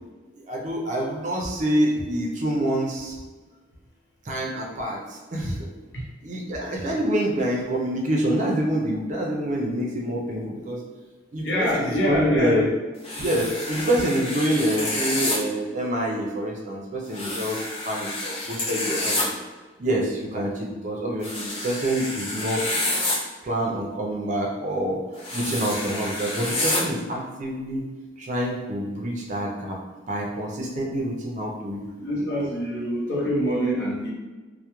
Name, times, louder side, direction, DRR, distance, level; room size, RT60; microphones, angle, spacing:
voice 1, 0.5-3.2 4.3-5.7 6.2-10.8 11.3-12.7 13.2-17.6 17.8-19.2 19.8-22.8 23.4-25.0 25.3-27.8 28.2-29.8 30.1-31.9, right 1 dB, 40° right, -1 dB, 0.4 m, -26 dB
voice 2, 11.4-12.6 32.0-34.1, equal, 70° left, -4 dB, 0.7 m, -25 dB
sound 1, 13.0-15.4 17.1-19.2 21.2-23.2 25.2-26.8, left 1 dB, 30° left, 0.5 m, -28 dB
2.2 x 2.1 x 2.9 m, 1.3 s
head